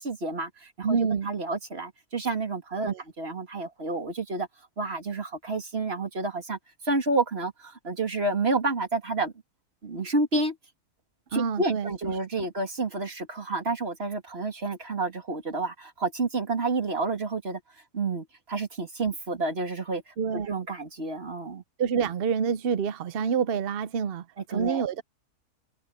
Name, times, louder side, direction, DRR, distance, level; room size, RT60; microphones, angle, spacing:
voice 1, 0.0-4.5 4.8-6.6 6.8-9.3 9.8-10.6 11.3-17.6 17.9-21.6 24.5-24.8, right 3 dB, 40° right, 2.8 m, -30 dB
voice 2, 0.8-1.3 2.8-3.0 11.3-11.9 12.4-12.5 20.2-20.6 21.8-25.0, right 6 dB, 55° right, 0.6 m, -27 dB
omnidirectional pair, 1.7 m